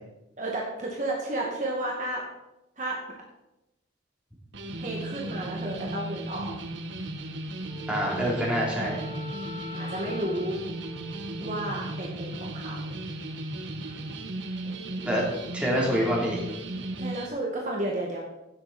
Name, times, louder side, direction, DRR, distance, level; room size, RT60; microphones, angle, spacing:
voice 1, 0.4-2.2 2.8-3.0 4.8-6.5 9.7-10.6 11.4-12.9 14.6-14.8 15.2-15.3 17.0-18.2, right 1 dB, 40° right, -2 dB, 2.0 m, -32 dB
sound 1, 4.5-17.3, right 1 dB, 75° right, 1.5 m, -36 dB
Wind instrument woodwind instrument, 7.6-12.1, left 1 dB, 15° left, 2.0 m, -43 dB
voice 2, 7.9-9.0 15.0-15.2 15.5-16.4, equal, 5° right, -4 dB, 3.5 m, -26 dB
16.5 x 8.1 x 4.3 m, 0.93 s
head